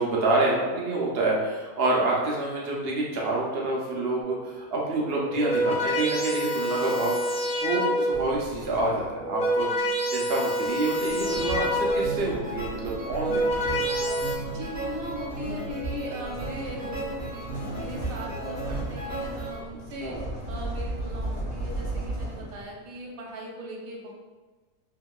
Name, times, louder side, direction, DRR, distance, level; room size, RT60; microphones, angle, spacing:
voice 1, 0.0-9.7 10.1-13.9 20.0-20.2, right 2 dB, 60° right, -3 dB, 0.6 m, -27 dB
sound 1, 4.2-4.5 5.2-8.4 9.1-12.3 13.0-14.3, equal, 80° left, 0.4 m, -27 dB
sound 2, 8.1-9.4 10.6-22.9, right 1 dB, 60° left, 1.1 m, -37 dB
sound 3, 11.0-19.6, right 2 dB, 20° right, 0.5 m, -35 dB
voice 2, 14.4-20.2 20.5-24.1, equal, 80° right, -2 dB, 1.1 m, -39 dB
2.9 x 2.7 x 2.2 m, 1.3 s
omnidirectional pair, 1.5 m